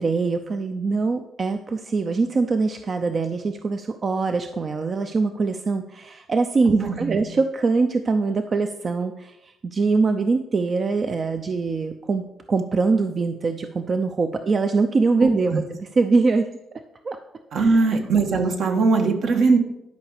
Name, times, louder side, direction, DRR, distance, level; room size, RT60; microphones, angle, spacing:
voice 1, 0.0-17.2 17.5-18.0, right 4 dB, 40° right, 7 dB, 0.6 m, -23 dB
voice 2, 6.8-7.2 15.2-15.6 17.5-19.6, right 4 dB, 65° right, 4 dB, 1.6 m, -20 dB
11.5 x 5.0 x 6.5 m, 0.88 s
cardioid pair, 90°, 0 cm